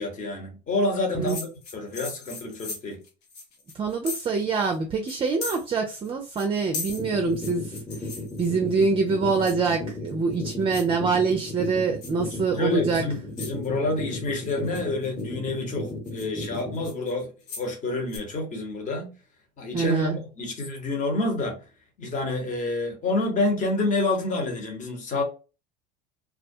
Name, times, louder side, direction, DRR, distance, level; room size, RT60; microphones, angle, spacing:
voice 1, 0.0-1.5 1.7-3.0 12.3-17.3 17.6-19.2 19.6-21.6 22.0-25.2, left 2 dB, 35° left, 1.1 m, -28 dB
sound 1, 1.3-4.4 4.7-4.8 5.1-6.1 6.4-8.9 9.5-9.9 10.3-10.9 11.3-11.7 12.0-12.3 12.9-13.0 13.4-13.7 14.3-15.2 15.7-17.7 18.1-18.2, left 4 dB, 80° left, 0.8 m, -38 dB
voice 2, 3.7-7.7 8.0-8.1 8.4-13.1 19.7-20.2, right 4 dB, 25° right, 0.4 m, -25 dB
sound 2, 6.9-16.9, left 2 dB, 5° left, 1.0 m, -35 dB
2.3 x 2.1 x 2.6 m
hypercardioid pair, 85°, 21 cm